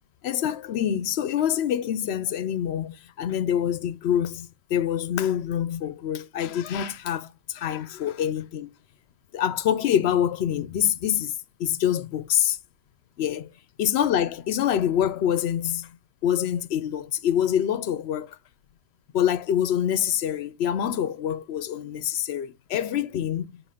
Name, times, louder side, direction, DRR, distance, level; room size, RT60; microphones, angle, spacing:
voice 1, 0.2-8.7 9.3-11.3 11.6-12.6 13.2-13.5 13.8-16.0 16.2-18.4 19.1-23.6, left 10 dB, 75° left, 0.8 m, -26 dB
7.0 x 3.0 x 4.9 m
omnidirectional pair, 1.1 m